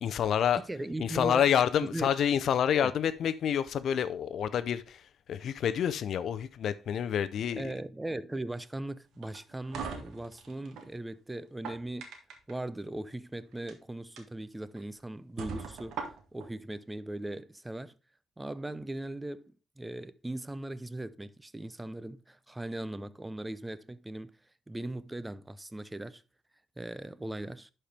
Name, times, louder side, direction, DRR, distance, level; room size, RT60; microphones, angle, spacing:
voice 1, 0.0-5.0 5.3-7.7, left 9 dB, 65° left, 0.6 m, -28 dB
voice 2, 0.6-1.5 1.8-2.1 2.7-2.9 7.5-12.1 12.5-15.9 16.3-17.9 18.4-24.4 24.7-26.2 26.8-27.7, right 1 dB, 10° right, 0.5 m, -39 dB
sound 1, 9.2-10.9 11.4-12.5 13.5-13.7 14.2-14.3 14.8-14.9 15.4-16.5, right 5 dB, 80° right, 1.5 m, -40 dB
11.0 x 4.4 x 3.4 m
cardioid pair, 90°, 0 cm